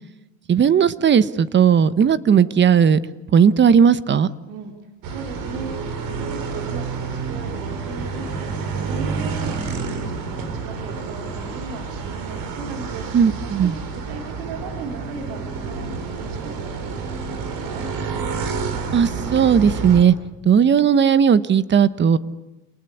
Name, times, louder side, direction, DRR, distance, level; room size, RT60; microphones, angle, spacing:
voice 1, 0.5-3.0 3.3-4.3 13.1-13.8 18.9-20.1 20.4-22.2, right 7 dB, 30° right, 16 dB, 1.1 m, -16 dB
voice 2, 4.5-17.9, right 4 dB, 80° right, 3 dB, 3.6 m, -37 dB
sound 1, 5.0-20.0, right 5 dB, 65° right, 4.6 m, -29 dB
28.5 x 20.0 x 8.4 m, 1.1 s
supercardioid pair, 120°, 38 cm